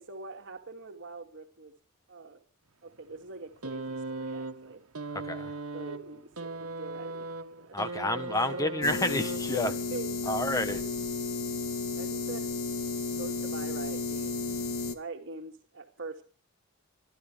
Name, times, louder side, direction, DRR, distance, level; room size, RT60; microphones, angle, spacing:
voice 1, 0.0-1.7 2.1-2.4 2.8-4.8 5.7-8.8 9.5-10.9 11.9-12.5 13.1-14.5 14.9-16.2, right 3 dB, 55° right, 2.5 m, -43 dB
sound 1, 3.6-9.8 10.8-10.9, right 2 dB, 85° right, 1.5 m, -38 dB
voice 2, 5.2-5.5 7.7-9.7 10.3-10.8, left 1 dB, 15° left, 1.3 m, -29 dB
sound 2, 8.8-15.0, left 4 dB, 70° left, 1.8 m, -33 dB
25.5 x 12.5 x 3.5 m
head